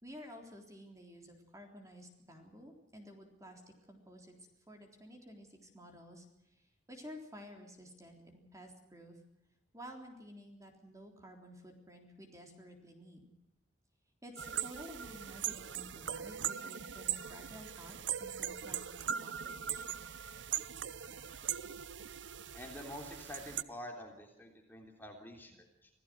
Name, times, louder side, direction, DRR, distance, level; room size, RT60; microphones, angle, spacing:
voice 1, 0.0-3.6 3.9-9.2 9.7-13.3 14.2-17.9 18.2-20.1, equal, 20° right, 3 dB, 3.7 m, -52 dB
sound 1, 14.4-23.6, right 9 dB, 85° right, 0.8 m, -40 dB
voice 2, 22.5-25.9, left 1 dB, 10° left, 2 dB, 3.4 m, -48 dB
26.5 x 16.5 x 6.3 m, 0.88 s
head